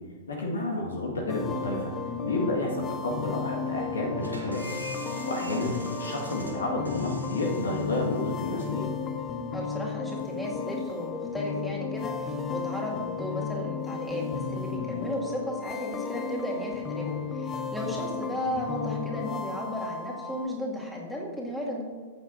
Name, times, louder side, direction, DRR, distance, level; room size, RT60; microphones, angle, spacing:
voice 1, 0.3-1.9 2.2-4.6 5.3-8.9, left 2 dB, 65° left, 0 dB, 1.7 m, -30 dB
sound 1, 1.3-20.5, left 5 dB, 20° left, 0.7 m, -34 dB
sound 2, 4.2-9.6, right 2 dB, 80° right, 1.8 m, -45 dB
voice 2, 5.3-5.8 9.5-21.8, left 1 dB, 5° left, -3 dB, 2.1 m, -35 dB
14.5 x 8.6 x 2.6 m, 1.5 s
figure-of-eight pair, 105°, 0 cm